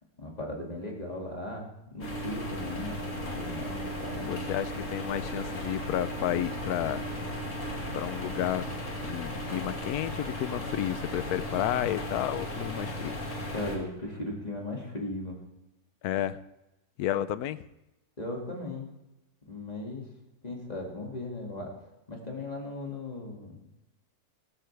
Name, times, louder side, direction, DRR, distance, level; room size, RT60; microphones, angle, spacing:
voice 1, 0.2-4.4 13.5-15.4 18.2-18.9 19.5-20.1 20.4-21.7 22.1-23.5, left 2 dB, 25° left, -1 dB, 2.4 m, -37 dB
sound 1, 2.0-13.8, equal, 55° left, 2.5 m, -36 dB
voice 2, 4.3-7.0 7.9-8.7 9.0-13.2 16.0-16.4 17.0-17.6, left 12 dB, 85° left, 15 dB, 1.1 m, -31 dB
17.0 x 13.0 x 3.4 m, 0.94 s
omnidirectional pair, 1.6 m